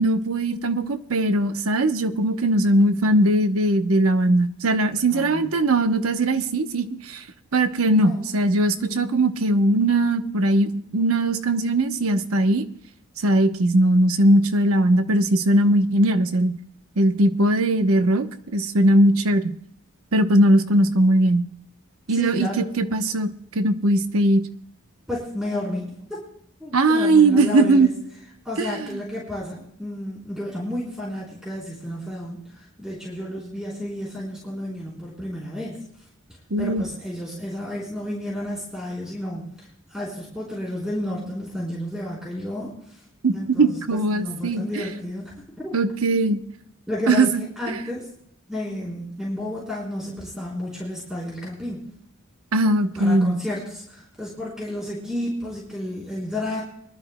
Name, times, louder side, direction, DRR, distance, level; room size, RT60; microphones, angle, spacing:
voice 1, 0.0-7.2 7.5-12.6 13.2-16.5 17.0-18.3 18.5-19.4 20.1-21.5 22.1-23.3 23.5-24.4 26.7-27.9 28.6-28.9 36.5-36.8 43.2-44.8 45.7-46.4 47.1-47.4 47.7-47.8 52.5-53.4, right 1 dB, 85° right, 8 dB, 0.9 m, -20 dB
voice 2, 5.1-5.5 8.0-8.3 8.7-9.1 22.1-22.7 25.1-26.2 26.6-27.9 28.4-35.8 36.6-43.0 43.3-45.7 46.9-47.3 47.6-48.1 48.5-51.8 53.0-56.6, left 1 dB, 5° right, -5 dB, 4.0 m, -31 dB
24.0 x 12.5 x 2.2 m, 0.71 s
head